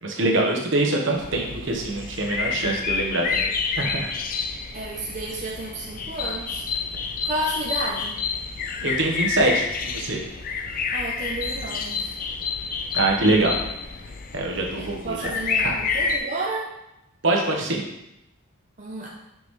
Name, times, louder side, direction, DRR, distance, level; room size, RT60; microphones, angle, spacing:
voice 1, 0.0-3.5 3.8-4.1 8.8-10.2 12.9-13.6 14.3-15.3 15.6-15.8 17.2-17.8, right 2 dB, 60° right, 0 dB, 1.1 m, -24 dB
sound 1, 1.2-16.2, left 5 dB, 40° left, 0.4 m, -29 dB
voice 2, 4.7-6.6 7.2-8.2 10.9-12.1 14.8-16.7 18.8-19.2, right 2 dB, 35° right, -3 dB, 0.6 m, -31 dB
6.1 x 5.4 x 3.2 m, 0.86 s
head